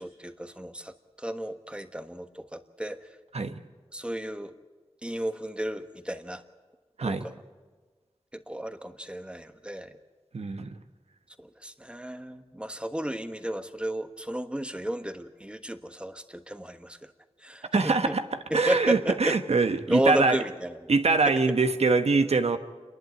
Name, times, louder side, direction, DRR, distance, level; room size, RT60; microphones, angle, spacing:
voice 1, 0.0-3.1 3.9-4.5 5.0-6.4 7.1-7.3 8.3-10.0 11.4-17.1 17.4-18.2 18.5-19.4 19.8-20.8, right 1 dB, 10° right, 8 dB, 1.3 m, -32 dB
voice 2, 10.3-10.7 17.7-18.2 18.5-20.4 20.9-22.6, right 3 dB, 75° right, 8 dB, 1.2 m, -23 dB
28.5 x 11.5 x 9.4 m, 1.4 s
wide cardioid pair, 70°, 11 cm